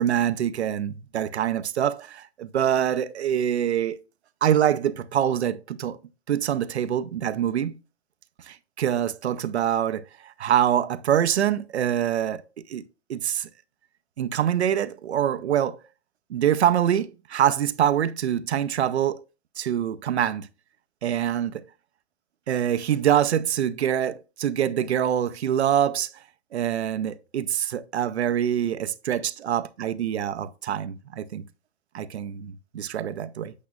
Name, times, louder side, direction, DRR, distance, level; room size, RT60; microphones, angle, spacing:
voice 1, 0.0-4.0 4.4-6.0 6.3-7.8 8.5-12.8 13.1-13.5 14.2-15.8 16.3-19.2 19.6-20.5 21.0-21.6 22.5-26.1 26.5-31.5 31.9-33.5, right 10 dB, 85° right, 0.7 m, -25 dB
8.4 x 7.1 x 2.4 m
hypercardioid pair, 130°, 32 cm